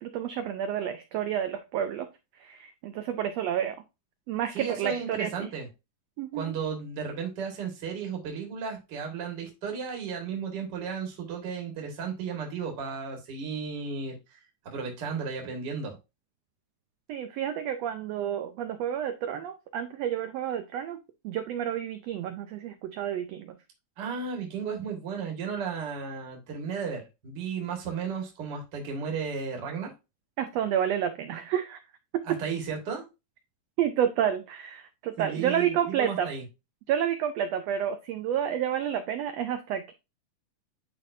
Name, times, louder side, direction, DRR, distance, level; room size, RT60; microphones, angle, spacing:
voice 1, 0.0-2.1 2.4-3.8 4.3-5.3 6.2-6.6 17.1-21.0 21.2-23.5 30.4-31.8 32.1-32.4 33.8-36.3 36.9-39.9, right 9 dB, 90° right, 9 dB, 1.4 m, -30 dB
voice 2, 4.5-5.7 6.3-14.1 14.7-15.9 24.0-29.9 32.2-33.0 35.2-36.4, right 6 dB, 40° right, 1 dB, 1.9 m, -34 dB
10.5 x 3.5 x 2.6 m, 0.25 s
omnidirectional pair, 3.6 m